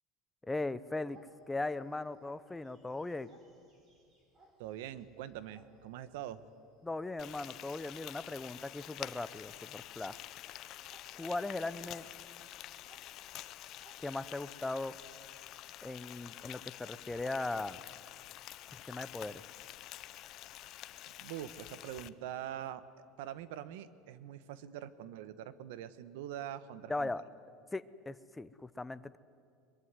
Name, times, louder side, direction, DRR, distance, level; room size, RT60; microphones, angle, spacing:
voice 1, 0.4-1.2 1.5-3.3 6.8-10.2 11.2-12.1 14.0-15.0 15.8-17.8 18.9-19.4 26.9-27.2 27.7-29.2, left 2 dB, 10° left, 14 dB, 0.6 m, -38 dB
sound 1, 1.1-14.1, right 2 dB, 25° right, 4.2 m, -67 dB
voice 2, 4.6-6.4 21.2-22.8 23.2-27.1, right 11 dB, 90° right, 14 dB, 1.1 m, -44 dB
Frying (food), 7.2-22.1, left 14 dB, 45° left, 0.7 m, -48 dB
22.5 x 21.5 x 9.6 m, 2.4 s
cardioid pair, 160°, 0 cm